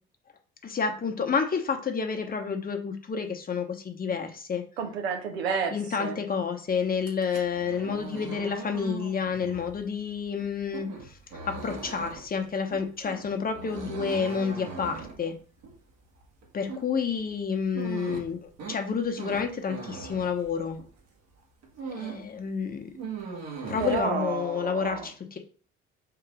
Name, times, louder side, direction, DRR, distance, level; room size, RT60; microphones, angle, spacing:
voice 1, 0.6-4.6 5.7-10.9 11.4-15.3 16.5-20.8 22.0-22.9 23.7-25.4, left 6 dB, 30° left, 4 dB, 0.9 m, -29 dB
voice 2, 4.8-5.7 6.0-6.2 23.8-25.1, right 6 dB, 85° right, 3 dB, 0.9 m, -30 dB
sound 1, 6.9-21.0 21.4-22.3 22.6-24.0, right 4 dB, 60° right, 1.4 m, -40 dB
3.8 x 2.9 x 4.7 m, 0.41 s
hypercardioid pair, 55°, 30 cm